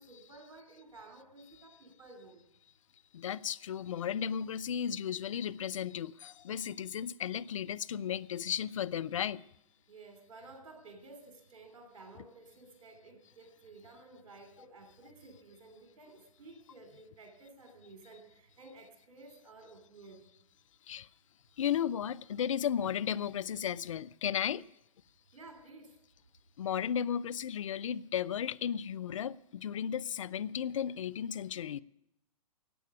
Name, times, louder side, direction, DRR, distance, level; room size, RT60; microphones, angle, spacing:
voice 1, 0.0-2.4 9.9-20.3 25.3-26.0, right 3 dB, 60° right, 3.2 m, -54 dB
voice 2, 3.1-9.4 20.9-21.1 21.6-24.7 26.6-31.8, left 9 dB, 60° left, 0.5 m, -34 dB
15.0 x 9.1 x 8.2 m
figure-of-eight pair, 115°, 19 cm